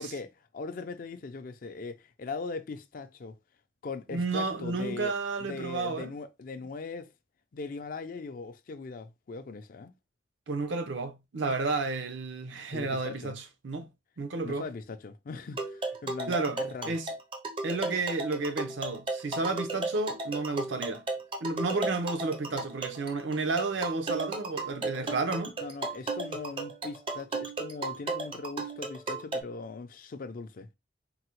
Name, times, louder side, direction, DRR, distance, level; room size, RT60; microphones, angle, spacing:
voice 1, 0.0-3.4 3.8-5.1 5.4-7.1 7.5-9.9 12.7-13.3 14.4-16.9 25.6-30.7, left 4 dB, 45° left, 0.4 m, -40 dB
voice 2, 4.1-6.1 10.5-13.9 14.2-14.6 16.3-16.6 16.8-17.1 17.6-21.0 21.4-25.6, right 3 dB, 75° right, 0.6 m, -31 dB
sound 1, 15.5-29.4, right 3 dB, 30° right, 0.4 m, -35 dB
3.8 x 2.0 x 2.9 m
head